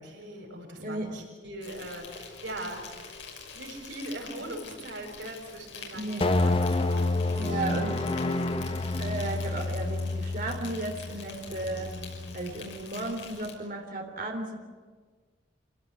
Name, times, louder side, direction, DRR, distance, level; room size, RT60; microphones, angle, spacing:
voice 1, 0.0-7.6 11.3-11.6, right 1 dB, 70° right, -2 dB, 7.3 m, -42 dB
voice 2, 0.8-1.1 5.9-6.2 7.3-8.1 9.0-12.0 12.3-14.6, right 2 dB, 50° right, 2 dB, 3.7 m, -34 dB
Insect, 1.6-13.5, left 5 dB, 75° left, 5.9 m, -46 dB
sound 1, 6.2-12.7, left 2 dB, 30° left, 1.2 m, -29 dB
26.5 x 17.5 x 9.6 m, 1.5 s
head